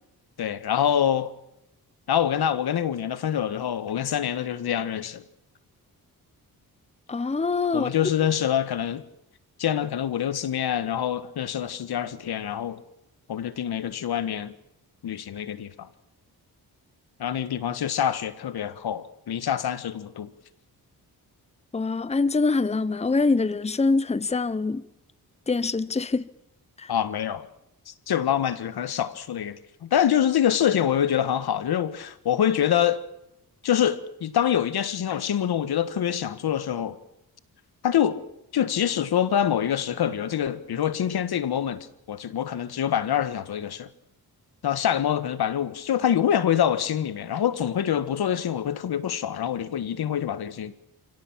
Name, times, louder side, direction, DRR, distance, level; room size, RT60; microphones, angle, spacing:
voice 1, 0.4-1.3 2.1-5.2 7.7-9.0 9.6-12.8 13.3-14.5 15.0-15.9 17.2-20.3 26.9-27.5 27.9-33.0 33.6-37.0 37.8-38.2 38.5-43.9 44.6-50.7, left 9 dB, 80° left, 1.6 m, -25 dB
voice 2, 7.1-7.9 21.7-24.8 25.5-26.2 26.8-26.9, left 3 dB, 15° left, 0.9 m, -24 dB
29.5 x 17.0 x 7.4 m
wide cardioid pair, 110°, 37 cm